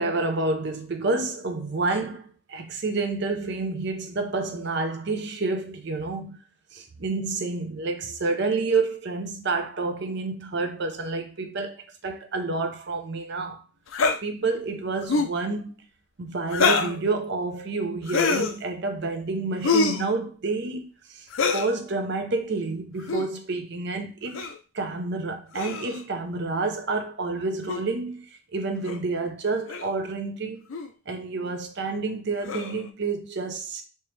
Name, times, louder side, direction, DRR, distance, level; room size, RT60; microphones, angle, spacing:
voice 1, 0.0-6.4 6.7-13.6 14.2-15.7 16.2-20.9 21.1-21.3 21.5-24.4 24.7-28.3 28.5-30.6 31.1-33.8, right 3 dB, 55° right, 0.7 m, -29 dB
sound 1, 13.9-14.2 15.0-15.4 16.5-17.0 18.1-18.5 19.6-20.1 21.3-21.7 23.0-23.3 24.3-24.6 25.5-26.0 27.7-27.8 28.9-29.0 29.7-29.9 30.7-30.9 32.4-32.8, left 4 dB, 70° left, 0.5 m, -25 dB
3.3 x 3.0 x 3.2 m
head